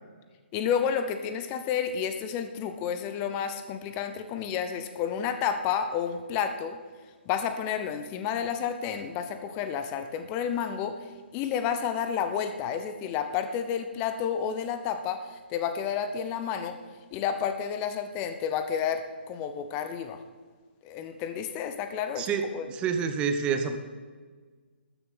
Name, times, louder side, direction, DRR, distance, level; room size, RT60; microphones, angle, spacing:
voice 1, 0.5-6.8 7.3-10.9 11.3-16.8 17.1-20.2 20.8-22.7, left 8 dB, 25° left, 9 dB, 0.8 m, -30 dB
voice 2, 22.7-23.8, right 6 dB, 15° right, 7 dB, 0.9 m, -27 dB
13.0 x 7.6 x 7.4 m, 1.5 s
figure-of-eight pair, 130°, 6 cm